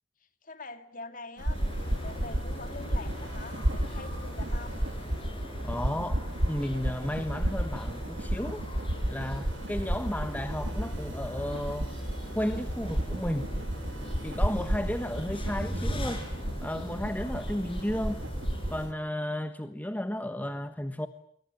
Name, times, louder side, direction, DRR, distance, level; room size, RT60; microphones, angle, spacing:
voice 1, 0.4-4.8, left 3 dB, 45° left, 2.4 m, -44 dB
sound 1, 1.4-18.9, right 1 dB, 80° right, 2.1 m, -33 dB
sound 2, 1.5-18.9, equal, 30° left, 7.7 m, -39 dB
voice 2, 5.6-6.2 6.5-8.6 9.1-11.9 12.3-13.5 14.2-16.2 16.6-18.2 18.7-21.1, left 1 dB, 10° left, 1.3 m, -33 dB
29.0 x 22.5 x 8.9 m
head